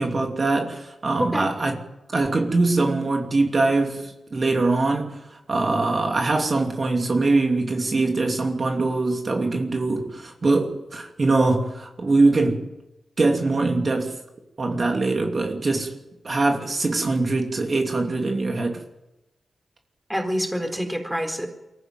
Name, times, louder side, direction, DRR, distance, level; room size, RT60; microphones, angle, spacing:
voice 1, 0.0-1.8 2.1-12.7 13.2-14.2 14.6-16.0 16.2-18.8, right 3 dB, 45° right, 2.8 m, -22 dB
voice 2, 20.1-21.5, equal, 5° right, 4.0 m, -26 dB
23.0 x 15.0 x 9.2 m
cardioid pair, 75°, 0 cm